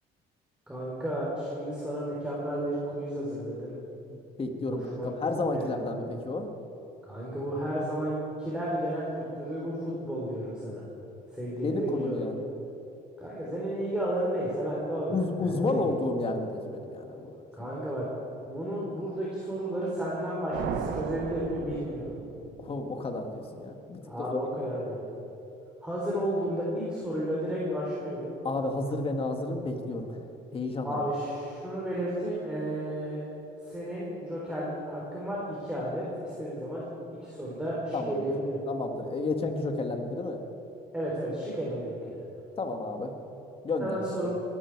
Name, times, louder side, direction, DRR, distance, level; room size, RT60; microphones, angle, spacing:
voice 1, 0.7-3.7 4.6-5.1 5.5-5.6 7.1-10.8 11.4-12.2 13.2-15.8 17.5-18.1 18.5-22.1 24.0-25.1 25.8-28.3 30.8-33.2 33.7-36.9 37.2-38.6 40.9-42.2 43.8-44.3, right 1 dB, 5° right, -6 dB, 3.8 m, -32 dB
voice 2, 4.1-6.5 11.6-12.5 15.1-17.3 17.6-17.7 22.6-24.4 28.4-30.2 30.5-31.0 37.9-38.3 38.7-40.4 42.6-43.1 43.6-44.0, left 2 dB, 35° left, 4 dB, 1.9 m, -31 dB
sound 1, 20.5-22.8, right 7 dB, 80° right, 1.1 m, -35 dB
22.0 x 12.5 x 4.7 m, 3.0 s
cardioid pair, 110°, 17 cm